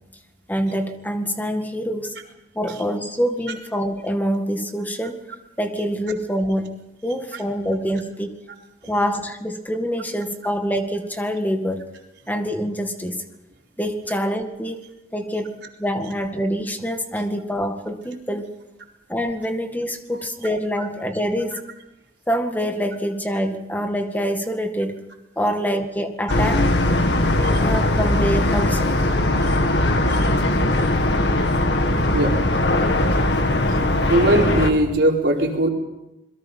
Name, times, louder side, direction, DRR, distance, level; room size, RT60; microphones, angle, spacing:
voice 1, 0.5-2.2 2.6-5.2 5.6-8.4 8.9-11.9 12.3-13.2 13.8-14.9 15.1-18.5 19.1-21.7 22.3-25.1 25.4-26.7 27.6-28.9, equal, 10° left, 6 dB, 1.9 m, -25 dB
sound 1, 26.3-34.7, left 1 dB, 85° left, 2.1 m, -19 dB
voice 2, 34.1-35.7, right 1 dB, 80° right, 0 dB, 4.3 m, -19 dB
27.5 x 22.0 x 5.6 m, 0.96 s
head